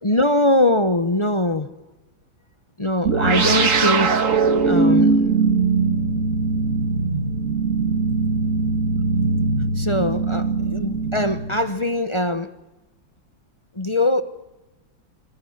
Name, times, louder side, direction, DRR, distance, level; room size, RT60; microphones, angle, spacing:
voice 1, 0.0-1.7 2.8-4.2 4.7-5.1 9.8-12.5 13.8-14.2, left 1 dB, 35° left, 0.5 m, -22 dB
sound 1, 3.1-11.9, right 4 dB, 40° right, 2.1 m, -20 dB
26.0 x 22.0 x 9.4 m
omnidirectional pair, 2.1 m